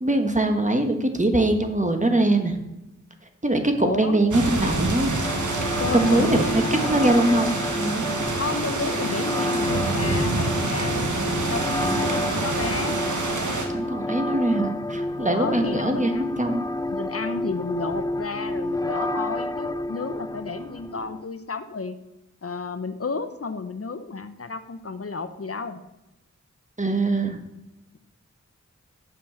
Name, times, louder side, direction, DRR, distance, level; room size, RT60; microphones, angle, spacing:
voice 1, 0.0-2.6 3.4-5.4 5.9-6.5 6.7-8.1 13.7-16.6 26.8-27.4, right 1 dB, 25° right, 5 dB, 1.3 m, -22 dB
voice 2, 3.8-4.2 5.8-7.0 8.4-13.0 15.3-16.4 16.9-21.9 22.4-25.8, left 4 dB, 50° left, 10 dB, 0.7 m, -32 dB
sound 1, 4.3-13.7, right 3 dB, 90° right, 1.3 m, -27 dB
sound 2, 5.2-21.2, left 1 dB, 15° left, 0.3 m, -30 dB
7.0 x 6.0 x 7.2 m, 0.93 s
wide cardioid pair, 45°, 29 cm